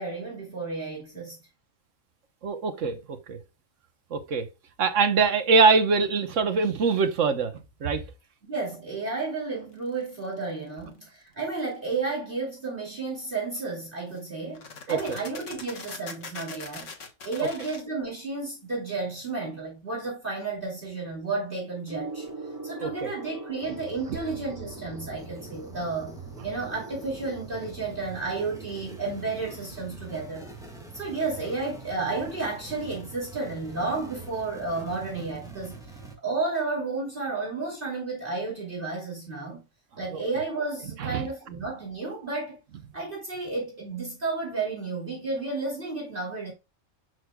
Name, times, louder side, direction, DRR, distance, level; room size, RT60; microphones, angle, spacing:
voice 1, 0.0-1.4 8.5-16.9 17.2-22.3 22.6-26.2 26.4-30.5 30.9-35.9 36.2-39.6 40.0-42.6 42.9-46.5, right 3 dB, 40° right, 2.9 m, -32 dB
voice 2, 2.4-3.0 3.3-3.4 4.1-4.5 4.8-7.5 7.8-8.0 14.9-15.0 22.8-23.1 40.1-40.2 41.0-41.3, right 4 dB, 70° right, 1.3 m, -23 dB
sound 1, 10.1-10.4 13.6-13.7 14.1-14.2 14.5-17.8, left 4 dB, 70° left, 1.7 m, -41 dB
Gong, 21.9-31.6 32.6-32.8, right 3 dB, 20° right, 4.6 m, -44 dB
sound 2, 23.6-36.2, right 3 dB, 5° right, 1.5 m, -44 dB
7.8 x 6.3 x 2.2 m
omnidirectional pair, 1.4 m